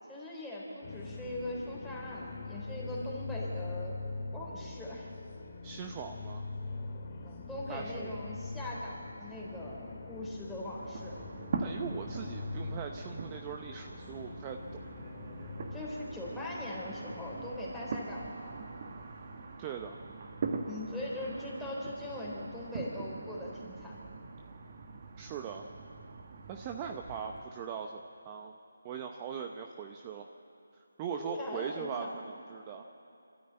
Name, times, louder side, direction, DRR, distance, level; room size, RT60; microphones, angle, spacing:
voice 1, 0.1-4.0 4.3-5.1 7.2-11.2 15.7-18.6 20.7-23.9 31.2-32.1, left 1 dB, 5° left, -6 dB, 3.5 m, -40 dB
sound 1, 0.8-17.5, left 3 dB, 35° left, 2.0 m, -43 dB
voice 2, 5.6-6.5 7.7-8.2 11.6-14.6 19.6-20.0 25.2-25.7 26.5-28.5 28.8-30.3 31.0-32.8, right 7 dB, 20° right, 4 dB, 0.8 m, -40 dB
sound 2, 10.7-27.4, right 4 dB, 40° right, 1.6 m, -42 dB
25.0 x 13.5 x 8.8 m, 2.7 s
figure-of-eight pair, 165°, 0 cm